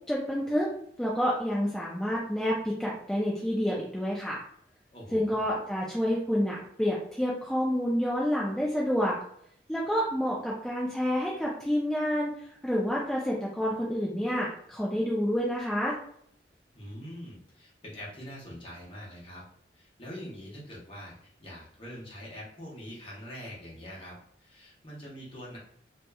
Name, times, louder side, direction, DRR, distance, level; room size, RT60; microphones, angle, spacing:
voice 1, 0.1-0.7 1.0-4.4 5.1-9.2 9.7-12.4 12.6-16.0, equal, 5° left, -5 dB, 0.3 m, -28 dB
voice 2, 4.9-5.5 16.7-19.4 19.7-25.6, equal, 30° left, -5 dB, 0.8 m, -44 dB
2.9 x 2.1 x 2.2 m, 0.68 s
head